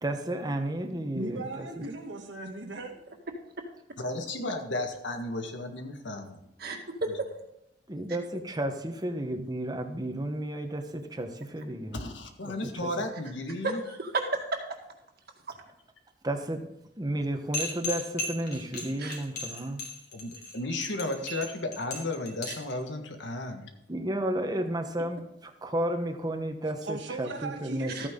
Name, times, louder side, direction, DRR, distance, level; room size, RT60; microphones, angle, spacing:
voice 1, 0.0-1.8 7.9-12.0 12.4-12.9 16.2-16.7 17.0-19.9 23.9-28.1, right 1 dB, 20° right, 5 dB, 1.1 m, -32 dB
voice 2, 1.2-2.9 26.8-28.1, right 2 dB, 75° right, 3 dB, 1.8 m, -37 dB
voice 3, 4.0-6.4 11.9-13.8 20.1-23.7, left 2 dB, 90° left, 5 dB, 1.6 m, -34 dB
voice 4, 6.6-7.4 13.6-14.4 19.0-19.2 22.5-22.6 27.9-28.1, right 3 dB, 60° right, 3 dB, 1.9 m, -32 dB
sound 1, 17.5-22.7, left 2 dB, 60° left, 3.0 m, -36 dB
13.5 x 9.3 x 3.8 m, 0.84 s
head